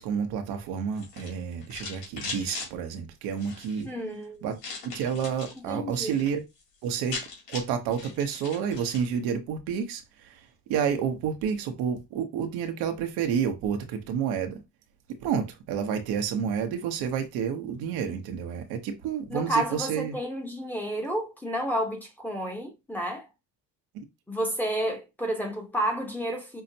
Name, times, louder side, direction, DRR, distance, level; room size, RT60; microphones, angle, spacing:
voice 1, 0.0-3.9 4.4-4.5 4.9-6.4 6.8-7.2 7.5-14.6 15.2-20.2 23.9-24.0, right 7 dB, 70° right, 0.9 m, -30 dB
sound 1, 0.9-2.7 3.3-3.8 4.6-5.6 5.9-6.3 6.6-6.7 6.9-9.1, left 4 dB, 70° left, 2.0 m, -39 dB
voice 2, 3.8-4.4 5.7-6.2 19.3-23.3 24.3-26.6, right 1 dB, 5° left, 0.9 m, -30 dB
5.6 x 2.1 x 2.7 m
cardioid pair, 120°, 38 cm